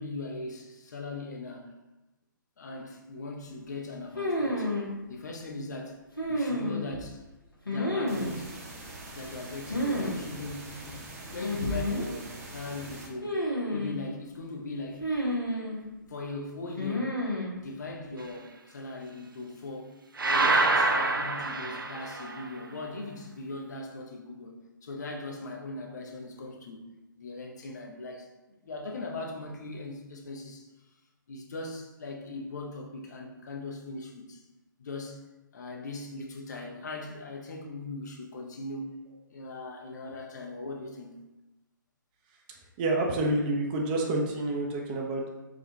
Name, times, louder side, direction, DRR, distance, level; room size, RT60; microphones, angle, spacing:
voice 1, 0.0-1.7 2.6-4.8 5.1-6.0 6.3-7.2 7.7-8.6 9.1-13.4 13.7-15.0 16.1-17.2 17.6-19.9 20.2-26.8 27.2-28.3 28.6-30.7 31.3-34.4 34.8-35.2 35.5-38.9 39.3-41.2, left 2 dB, 55° left, 1 dB, 0.8 m, -40 dB
sound 1, 4.2-4.9 6.2-7.0 7.7-8.4 9.7-10.1 10.4-10.5 11.4-12.1 13.2-14.0 15.0-15.8 16.8-17.5, left 1 dB, 85° left, 1.1 m, -30 dB
sound 2, 8.1-13.1, right 2 dB, 45° right, 0.9 m, -44 dB
sound 3, 20.2-22.4, right 2 dB, 75° right, 0.4 m, -26 dB
voice 2, 42.8-45.3, right 2 dB, 25° right, 1 dB, 0.5 m, -28 dB
4.9 x 2.3 x 3.9 m, 1.1 s
figure-of-eight pair, 130°, 11 cm